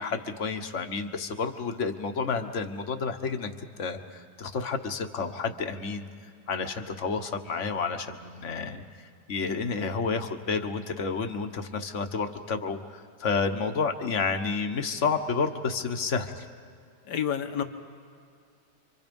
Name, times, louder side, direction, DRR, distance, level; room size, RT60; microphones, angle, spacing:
voice 1, 0.0-3.5 3.8-6.1 6.5-8.8 9.3-16.4, left 4 dB, 50° left, 6 dB, 1.4 m, -30 dB
voice 2, 17.1-17.6, left 9 dB, 75° left, 7 dB, 1.8 m, -29 dB
29.0 x 25.0 x 5.3 m, 2.3 s
omnidirectional pair, 1.8 m